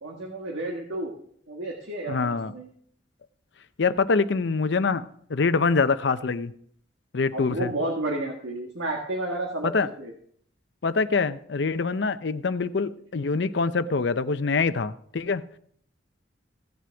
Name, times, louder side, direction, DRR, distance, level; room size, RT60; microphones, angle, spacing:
voice 1, 0.0-1.1 1.5-2.7 7.3-10.1, right 2 dB, 90° right, 1.6 m, -31 dB
voice 2, 2.1-2.5 3.8-6.5 7.1-7.7 9.6-9.9 10.8-15.4, left 4 dB, 65° left, 0.6 m, -25 dB
16.0 x 7.7 x 3.4 m
head